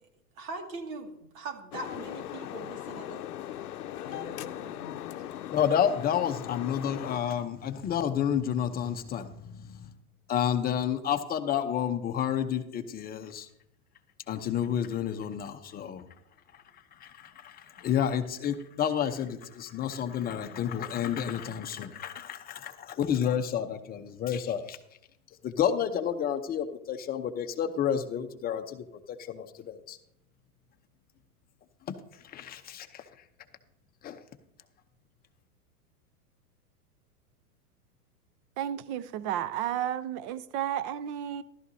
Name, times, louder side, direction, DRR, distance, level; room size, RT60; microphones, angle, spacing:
voice 1, 0.4-3.2 4.0-5.1, right 3 dB, 60° right, 4 dB, 2.3 m, -42 dB
sound 1, 1.7-7.2, left 12 dB, 80° left, 0.7 m, -39 dB
voice 2, 5.5-9.9 10.3-13.5 14.3-16.0 17.0-24.8 25.4-30.0 31.9-32.0 32.2-33.0 34.0-34.2, left 9 dB, 20° left, 6 dB, 0.8 m, -30 dB
voice 3, 38.6-41.4, right 10 dB, 35° right, 16 dB, 0.5 m, -32 dB
14.0 x 12.5 x 2.8 m, 0.80 s
hypercardioid pair, 120°, 46 cm